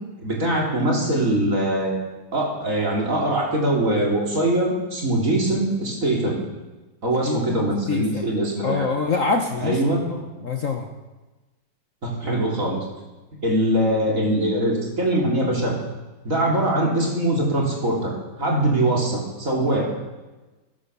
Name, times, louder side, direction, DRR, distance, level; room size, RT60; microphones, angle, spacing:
voice 1, 0.2-2.0 2.3-6.4 7.0-8.9 9.6-10.0 12.0-12.8 13.4-15.7 16.2-18.1 18.4-19.9, right 1 dB, 40° right, -2 dB, 3.7 m, -22 dB
voice 2, 7.2-7.6 7.9-8.3 8.6-9.8 10.1-10.9, left 4 dB, 50° left, 3 dB, 1.2 m, -25 dB
16.5 x 10.5 x 6.8 m, 1.2 s
omnidirectional pair, 2.1 m